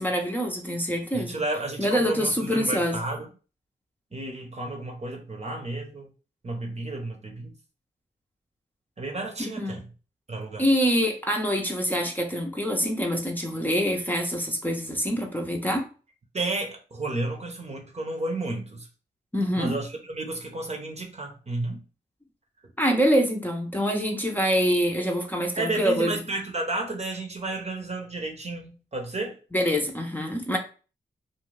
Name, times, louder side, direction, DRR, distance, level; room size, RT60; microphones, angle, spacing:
voice 1, 0.0-1.4 1.8-3.0 9.4-9.8 10.6-15.9 19.3-19.7 22.8-26.2 29.5-30.6, equal, 10° left, 1 dB, 0.7 m, -25 dB
voice 2, 1.1-3.3 4.1-6.1 6.4-7.5 9.0-9.8 10.3-10.6 16.3-18.9 19.6-21.8 22.6-22.7 25.6-29.3, right 2 dB, 40° right, 2 dB, 0.8 m, -32 dB
2.5 x 2.3 x 3.2 m, 0.36 s
cardioid pair, 50°, 18 cm